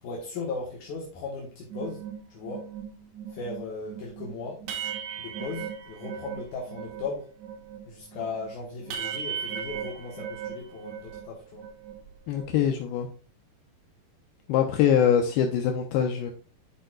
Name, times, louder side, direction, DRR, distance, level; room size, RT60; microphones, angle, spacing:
voice 1, 0.0-2.0 2.3-2.7 3.3-4.6 5.2-7.3 7.9-11.7, left 4 dB, 60° left, 2.3 m, -37 dB
sound 1, 1.7-7.1 7.4-11.3 11.6-12.7, right 8 dB, 75° right, 2.9 m, -38 dB
voice 2, 12.3-13.1 14.5-16.3, left 8 dB, 80° left, 2.4 m, -23 dB
11.5 x 5.1 x 2.3 m
omnidirectional pair, 4.8 m